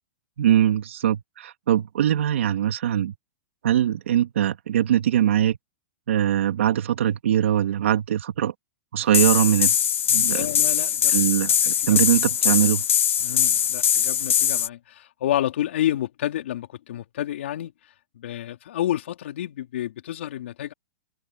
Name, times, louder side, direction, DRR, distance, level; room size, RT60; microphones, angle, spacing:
voice 1, 0.4-3.1 3.6-5.6 6.1-8.5 8.9-9.8 10.1-10.5 11.1-12.8, right 11 dB, 75° right, 2.8 m, -22 dB
sound 1, 9.1-14.7, left 9 dB, 90° left, 2.3 m, -21 dB
voice 2, 10.2-11.2 11.9-12.0 13.2-20.7, left 12 dB, 65° left, 3.8 m, -30 dB
hypercardioid pair, 150°, 7 cm